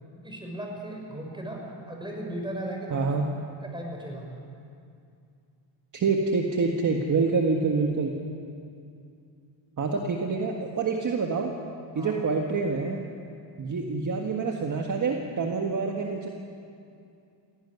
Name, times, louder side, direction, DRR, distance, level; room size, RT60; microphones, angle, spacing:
voice 1, 0.2-3.1 3.6-4.3 11.9-12.2, right 1 dB, 10° right, 0 dB, 5.6 m, -36 dB
voice 2, 2.9-3.2 5.9-8.2 9.8-11.5 11.9-13.0 13.6-16.3, right 4 dB, 40° right, 2 dB, 1.7 m, -26 dB
17.0 x 16.5 x 9.6 m, 2.5 s
cardioid pair, 110°, 47 cm